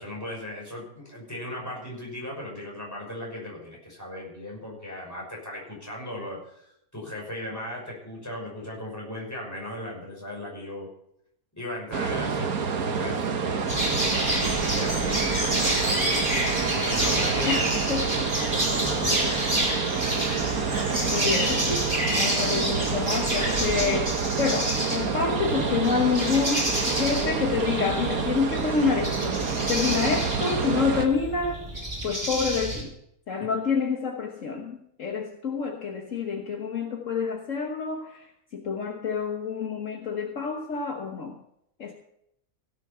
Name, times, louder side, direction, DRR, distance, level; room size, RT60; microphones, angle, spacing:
voice 1, 0.0-10.9 11.6-14.0 14.5-16.1 16.5-17.7 18.6-20.0, left 1 dB, 10° left, -3 dB, 5.8 m, -37 dB
sound 1, 11.9-31.1, right 5 dB, 80° right, 1.6 m, -28 dB
sound 2, 13.7-32.8, right 1 dB, 35° right, 4.2 m, -29 dB
voice 2, 21.1-31.6 32.0-32.9 33.3-38.3 38.5-41.3 41.8-41.9, left 5 dB, 60° left, 2 dB, 1.6 m, -28 dB
16.5 x 7.6 x 5.7 m, 0.74 s
omnidirectional pair, 1.5 m